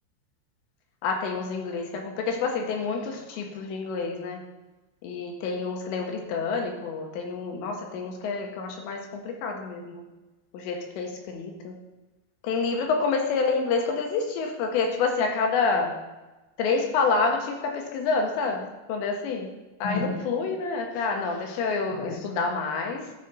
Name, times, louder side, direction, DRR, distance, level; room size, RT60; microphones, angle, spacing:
voice 1, 1.0-4.4 5.0-10.0 10.5-11.7 12.4-15.9 16.6-19.5 19.8-23.1, left 4 dB, 80° left, 2 dB, 2.7 m, -28 dB
13.0 x 4.8 x 4.0 m, 1.1 s
omnidirectional pair, 5.8 m